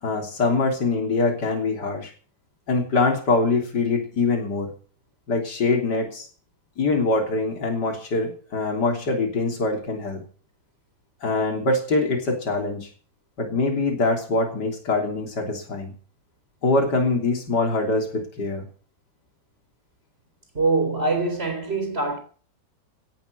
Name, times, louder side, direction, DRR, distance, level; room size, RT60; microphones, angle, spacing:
voice 1, 0.0-2.1 2.7-4.7 5.3-6.3 6.8-10.2 11.2-12.9 13.4-15.9 16.6-18.6, left 3 dB, 65° left, 3.9 m, -23 dB
voice 2, 20.5-22.2, right 3 dB, 30° right, 4.2 m, -23 dB
17.0 x 7.8 x 7.9 m
omnidirectional pair, 2.0 m